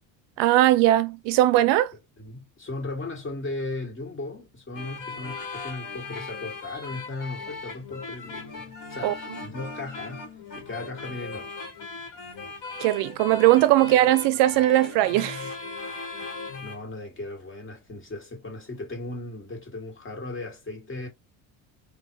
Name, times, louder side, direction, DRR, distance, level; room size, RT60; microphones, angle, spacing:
voice 1, 0.4-1.9 9.0-9.1 12.8-15.5, right 15 dB, 70° right, 0.6 m, -20 dB
voice 2, 2.2-10.3 10.5-11.6 16.6-21.1, left 2 dB, 30° left, 2.3 m, -37 dB
sound 1, 4.7-16.8, left 4 dB, 45° left, 1.9 m, -38 dB
3.9 x 2.8 x 3.0 m
supercardioid pair, 95°, 43 cm